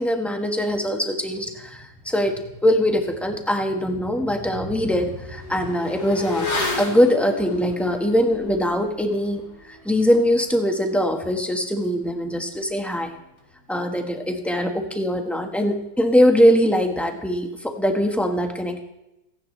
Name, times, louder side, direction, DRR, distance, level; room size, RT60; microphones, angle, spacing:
voice 1, 0.0-6.5 6.8-13.1 13.7-18.8, equal, ahead, 3 dB, 1.2 m, -22 dB
Motorcycle / Accelerating revving vroom, 3.4-3.5 3.9-13.9 14.1-14.3, left 3 dB, 55° left, 2.8 m, -35 dB
28.0 x 9.9 x 3.3 m, 0.90 s
omnidirectional pair, 2.0 m